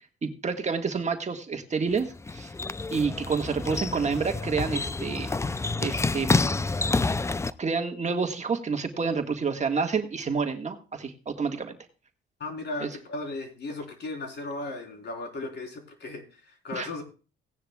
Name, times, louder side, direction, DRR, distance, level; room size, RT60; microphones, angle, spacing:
voice 1, 0.2-2.5 2.9-5.3 5.8-6.3 7.6-11.8 12.8-12.9 16.7-16.9, right 5 dB, 35° right, 5 dB, 1.7 m, -29 dB
sound 1, 1.9-7.5, left 3 dB, 15° left, 0.4 m, -28 dB
voice 2, 12.4-17.0, left 2 dB, 60° left, 2 dB, 3.9 m, -36 dB
17.0 x 10.0 x 2.3 m, 0.34 s
cardioid pair, 90°, 20 cm